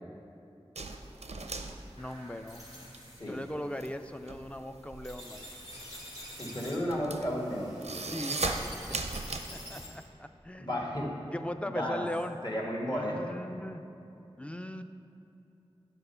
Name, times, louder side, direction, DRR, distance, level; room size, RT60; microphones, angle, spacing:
sound 1, 0.8-3.0 3.3-9.4, right 3 dB, 90° right, 0.5 m, -37 dB
sound 2, 2.0-10.1, equal, 85° left, 1.6 m, -48 dB
voice 1, 2.0-2.6 3.2-5.5 8.0-9.0 9.5-10.7 11.3-12.4 12.8-13.8 14.4-14.8, left 1 dB, 10° left, 8 dB, 0.4 m, -39 dB
voice 2, 6.4-7.8 10.6-11.1 11.6-12.0 12.4-13.4, equal, 40° left, -3 dB, 1.5 m, -33 dB
9.0 x 4.4 x 5.4 m, 2.8 s
wide cardioid pair, 45°, 11 cm